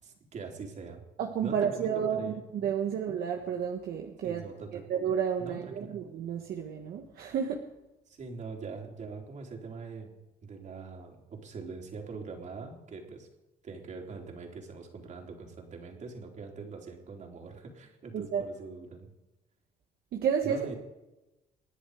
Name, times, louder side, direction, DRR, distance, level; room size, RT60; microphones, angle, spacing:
voice 1, 0.0-1.0 1.4-2.4 2.9-3.0 4.2-4.9 5.4-5.8 8.1-13.3 13.6-19.1 20.4-20.8, right 4 dB, 45° right, 2 dB, 3.9 m, -43 dB
voice 2, 1.2-4.4 4.9-7.6 18.1-18.4 20.1-20.7, right 7 dB, 65° right, 3 dB, 1.6 m, -31 dB
27.5 x 10.5 x 5.0 m, 1.0 s
cardioid pair, 110°, 17 cm